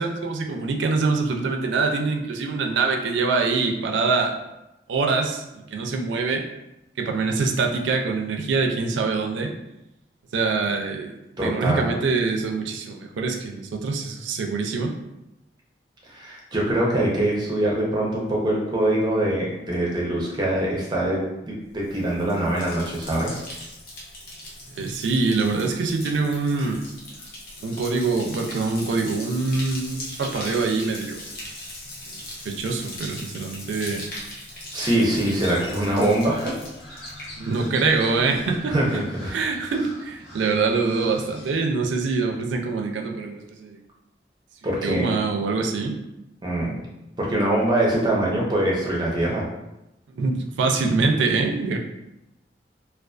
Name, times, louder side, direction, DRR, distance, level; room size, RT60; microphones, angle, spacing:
voice 1, 0.0-4.3 4.9-6.4 7.0-9.5 10.3-11.1 11.4-15.0 24.7-26.8 27.6-31.2 32.1-34.0 37.4-38.7 39.3-43.8 44.8-46.0 50.1-51.8, right 4 dB, 90° right, 3 dB, 0.4 m, -24 dB
voice 2, 11.4-11.9 16.1-23.4 26.6-26.7 34.7-36.6 38.7-39.3 44.6-45.0 46.4-46.8 47.2-49.5, right 1 dB, 25° right, -4 dB, 0.5 m, -23 dB
Bathtub (filling or washing), 21.8-37.9 38.2-38.7, left 1 dB, 55° left, 0.6 m, -39 dB
Crow, 35.2-41.6, left 1 dB, 70° left, 1.0 m, -41 dB
2.4 x 2.3 x 2.3 m, 0.91 s
head